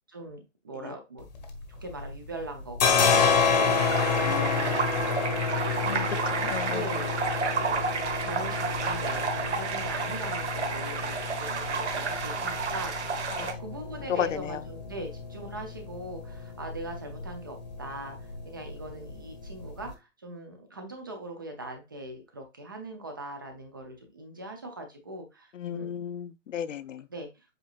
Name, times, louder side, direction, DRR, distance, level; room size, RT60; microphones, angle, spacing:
voice 1, 0.1-1.3 1.8-6.3 6.7-7.2 7.5-7.8 8.2-12.9 13.4-25.9 27.1-27.6, right 1 dB, 20° right, 0.5 m, -41 dB
sound 1, 1.2-2.2 2.4-19.9, left 5 dB, 35° left, 0.9 m, -30 dB
sound 2, 3.6-13.5, right 5 dB, 65° right, 1.3 m, -31 dB
voice 2, 4.2-4.7 5.9-6.9 13.4-13.5 14.1-14.6 25.6-27.0, left 9 dB, 75° left, 0.6 m, -33 dB
7.8 x 2.7 x 2.4 m
hypercardioid pair, 160°, 38 cm